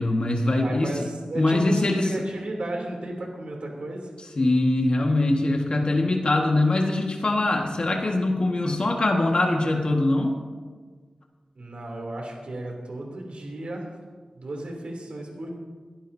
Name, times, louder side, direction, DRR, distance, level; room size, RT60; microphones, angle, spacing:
voice 1, 0.0-0.9 1.3-2.1 4.4-10.4, left 2 dB, 55° left, 1 dB, 1.7 m, -22 dB
voice 2, 0.6-4.1 11.5-13.9 14.3-15.5, right 1 dB, 70° right, 0 dB, 3.2 m, -34 dB
22.5 x 12.0 x 2.8 m, 1.5 s
wide cardioid pair, 85°, 2 cm